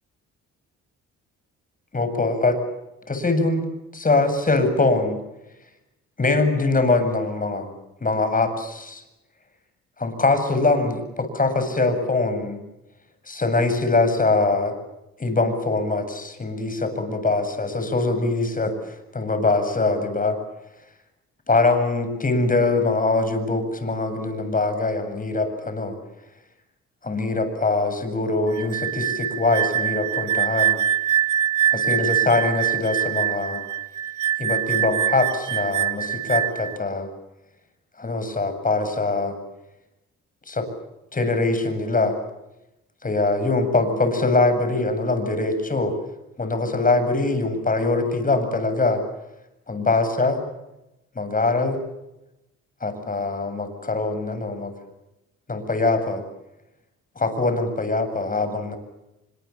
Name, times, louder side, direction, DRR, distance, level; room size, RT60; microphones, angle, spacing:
voice 1, 1.9-2.6 3.1-3.6 3.9-5.2 6.2-7.7 8.0-9.0 10.0-12.6 13.3-14.7 15.2-18.7 19.1-20.4 21.5-25.9 27.0-30.8 31.7-33.6 34.4-37.1 38.0-39.3 40.5-40.6 41.1-42.2 43.0-45.9 46.4-49.0 49.7-50.4 51.2-51.8 52.8-54.7 55.5-56.2 57.2-58.8, left 3 dB, 25° left, 9 dB, 7.8 m, -23 dB
sound 1, 28.5-36.8, right 10 dB, 75° right, 2.0 m, -24 dB
30.0 x 25.5 x 7.3 m, 0.93 s
cardioid pair, 90°, 30 cm